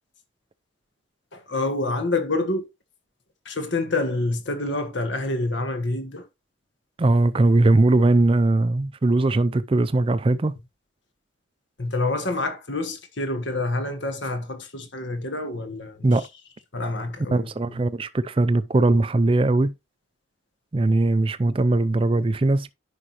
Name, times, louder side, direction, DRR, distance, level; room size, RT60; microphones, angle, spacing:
voice 1, 1.3-2.6 3.4-6.3 11.8-16.3 16.7-17.8, left 2 dB, 60° left, 1.3 m, -27 dB
voice 2, 7.0-10.6 16.0-16.3 17.3-19.7 20.7-22.7, right 2 dB, 25° right, 0.4 m, -20 dB
9.9 x 5.5 x 2.9 m
head